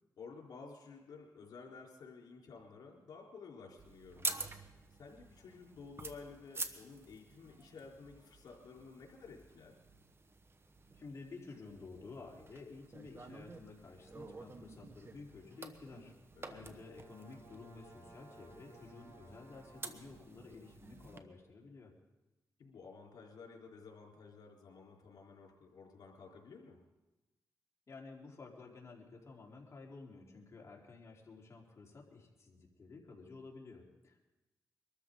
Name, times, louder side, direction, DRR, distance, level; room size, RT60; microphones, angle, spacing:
voice 1, 0.2-4.3 4.9-9.8 16.4-16.8 22.6-26.8, left 4 dB, 80° left, -1 dB, 4.0 m, -53 dB
sound 1, 3.8-21.2, right 3 dB, 35° right, 1.3 m, -48 dB
voice 2, 11.0-16.1 16.5-21.9 27.9-34.2, left 4 dB, 45° left, -2 dB, 3.9 m, -52 dB
sound 2, 16.3-20.2, right 2 dB, 55° right, 5.7 m, -60 dB
23.5 x 13.5 x 3.9 m, 1.0 s
cardioid pair, 70°, 7 cm